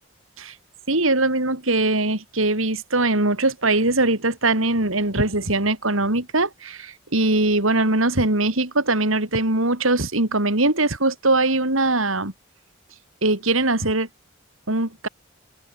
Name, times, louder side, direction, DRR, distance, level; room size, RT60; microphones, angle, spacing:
voice 1, 0.9-12.3 13.2-14.1 14.7-15.1, right 2 dB, 85° right, 4.8 m, -21 dB
head